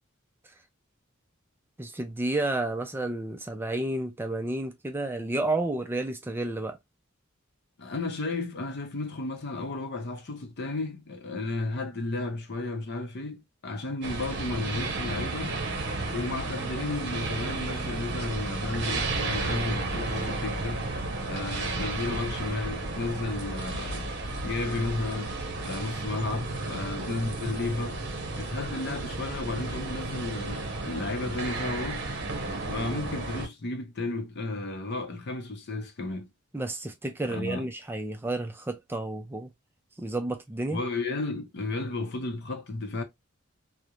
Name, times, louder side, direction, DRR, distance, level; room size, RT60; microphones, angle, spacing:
voice 1, 1.8-6.8 36.5-39.5 40.0-40.8, right 2 dB, 10° right, 0.3 m, -31 dB
voice 2, 7.8-15.6 16.1-20.9 21.2-24.1 24.4-25.3 25.6-28.0 28.4-32.1 32.7-36.3 37.2-37.7 40.7-43.0, left 2 dB, 55° left, 0.6 m, -33 dB
sound 1, 14.0-33.5, right 2 dB, 55° right, 0.7 m, -33 dB
2.4 x 2.1 x 2.8 m
head